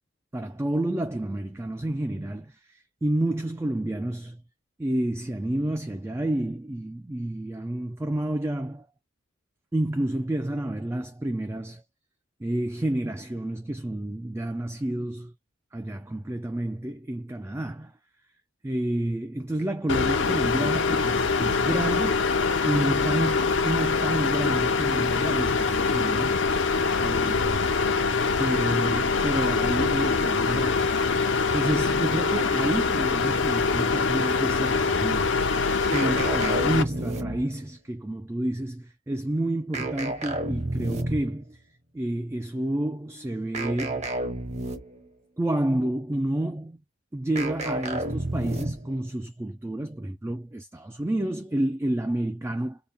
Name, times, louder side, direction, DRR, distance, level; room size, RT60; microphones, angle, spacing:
voice 1, 0.3-4.4 4.8-8.9 9.7-11.8 12.4-15.3 15.7-17.9 18.6-22.3 22.6-26.4 27.0-27.7 28.4-30.9 31.5-35.3 35.9-41.6 41.9-44.1 45.4-46.8 47.1-52.8, right 1 dB, 10° right, 0.3 m, -29 dB
sound 1, 19.9-36.8, left 4 dB, 60° left, 0.6 m, -24 dB
sound 2, 35.9-37.7 39.7-41.4 43.5-45.1 47.3-48.9, right 1 dB, 35° right, 0.8 m, -31 dB
3.9 x 2.2 x 3.5 m
head